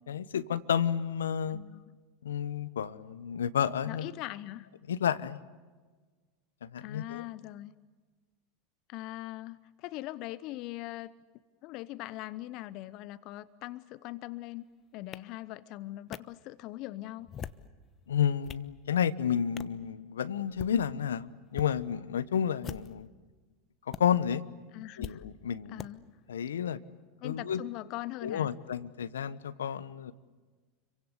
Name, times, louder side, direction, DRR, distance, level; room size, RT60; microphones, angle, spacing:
voice 1, 0.1-1.6 2.2-4.1 4.9-5.4 6.6-7.2 18.1-23.1 23.9-24.4 24.7-25.9 26.3-26.8 27.2-27.6 28.2-30.1, left 8 dB, 80° left, 16 dB, 1.1 m, -31 dB
voice 2, 1.5-1.8 3.9-4.7 6.8-7.7 8.9-11.1 11.6-14.6 14.9-17.3 24.7-25.2 25.7-26.0 27.2-28.5, left 17 dB, 55° left, 17 dB, 0.9 m, -41 dB
sound 1, 15.1-15.2 16.1-16.2 17.2-17.7 18.2-18.7 19.6-19.8 20.4-20.7 21.5-21.7 22.6-23.1 23.9-24.0 25.0-25.2 25.8-25.9, left 8 dB, 35° left, 1.1 m, -42 dB
30.0 x 24.0 x 8.2 m, 1.3 s
hypercardioid pair, 85°, 0 cm